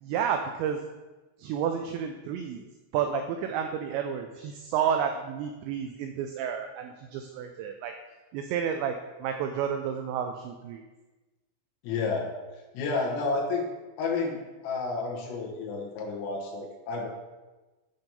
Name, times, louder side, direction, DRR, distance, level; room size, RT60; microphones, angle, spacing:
voice 1, 0.0-0.8 1.4-2.6 2.9-8.0 8.3-10.8, right 8 dB, 85° right, 5 dB, 2.5 m, -31 dB
voice 2, 11.8-12.3 12.7-13.6 14.0-14.4 14.6-17.1, left 4 dB, 90° left, -2 dB, 4.0 m, -30 dB
10.5 x 4.6 x 5.3 m, 1.2 s
omnidirectional pair, 5.7 m